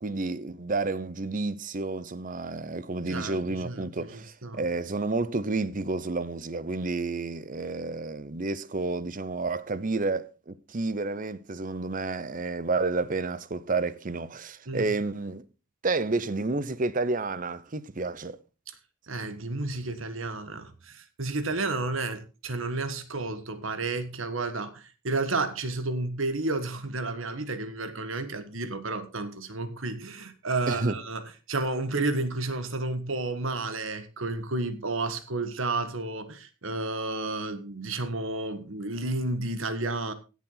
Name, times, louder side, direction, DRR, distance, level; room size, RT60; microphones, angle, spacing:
voice 1, 0.0-15.4 15.8-18.4 30.7-30.9, right 3 dB, 40° right, 0.8 m, -30 dB
voice 2, 3.1-4.6 14.6-14.9 19.1-31.2 31.5-40.1, right 2 dB, 70° right, 1.5 m, -31 dB
16.5 x 7.4 x 3.9 m
head